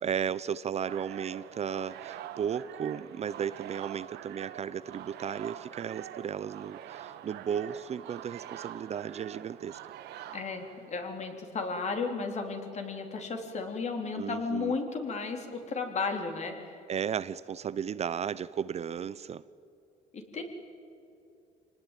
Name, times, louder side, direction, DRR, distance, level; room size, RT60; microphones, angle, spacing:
voice 1, 0.0-9.8 14.1-14.8 16.9-19.4, right 8 dB, 40° right, 16 dB, 0.6 m, -34 dB
sound 1, 0.8-11.3, right 11 dB, 80° right, 1.4 m, -45 dB
voice 2, 10.3-16.8 20.1-20.4, left 4 dB, 40° left, 4 dB, 3.6 m, -34 dB
26.0 x 19.0 x 9.2 m, 2.6 s
cardioid pair, 110°, 17 cm